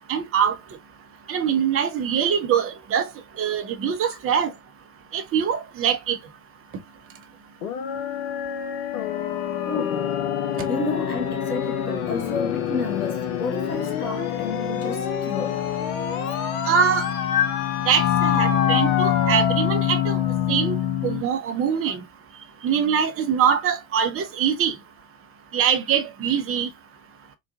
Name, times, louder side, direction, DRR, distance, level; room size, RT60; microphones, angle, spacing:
voice 1, 0.1-0.5 1.3-3.1 3.4-4.5 5.1-6.2 16.7-17.0 17.9-20.2 20.5-20.8 21.0-22.0 22.6-24.7 25.5-26.7, right 8 dB, 30° right, 0.8 m, -23 dB
sound 1, 7.6-21.2, left 9 dB, 70° left, 0.8 m, -25 dB
voice 2, 9.6-10.1 10.7-15.7, left 4 dB, 90° left, 1.1 m, -31 dB
3.9 x 2.4 x 2.4 m
figure-of-eight pair, 70°, 44 cm